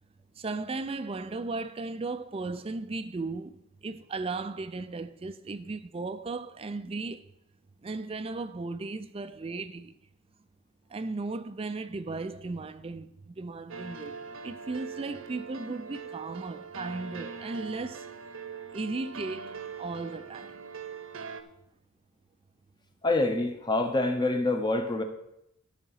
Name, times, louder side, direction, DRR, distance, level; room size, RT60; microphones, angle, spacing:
voice 1, 0.4-7.3 7.8-9.9 10.9-14.2 14.4-18.1 18.7-20.6, right 3 dB, 25° right, 0.4 m, -36 dB
sound 1, 13.7-21.4, right 5 dB, 70° right, 0.8 m, -42 dB
voice 2, 23.0-25.0, left 2 dB, 20° left, 0.8 m, -26 dB
12.0 x 5.0 x 5.6 m
head